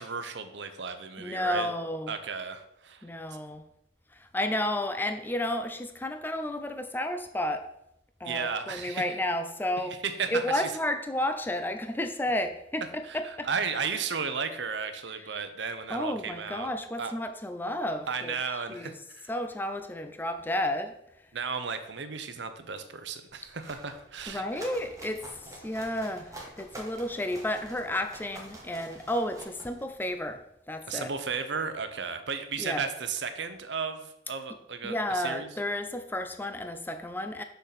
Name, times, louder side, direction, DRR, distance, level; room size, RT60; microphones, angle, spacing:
voice 1, 0.0-1.7 2.1-3.0 8.2-9.1 9.9-10.7 13.0-16.7 17.0-17.1 18.1-19.3 21.3-24.7 30.9-35.5, right 5 dB, 65° right, 9 dB, 0.8 m, -34 dB
voice 2, 1.2-2.1 3.0-3.6 4.1-7.6 8.2-10.0 10.3-13.5 15.2-15.3 15.9-18.4 18.7-18.9 19.3-20.9 24.3-30.4 30.7-31.1 32.6-32.8 34.8-37.4, left 1 dB, 10° left, 7 dB, 0.5 m, -32 dB
sound 1, 23.3-30.3, right 1 dB, 20° right, 1.4 m, -47 dB
6.7 x 6.3 x 4.2 m, 0.80 s
head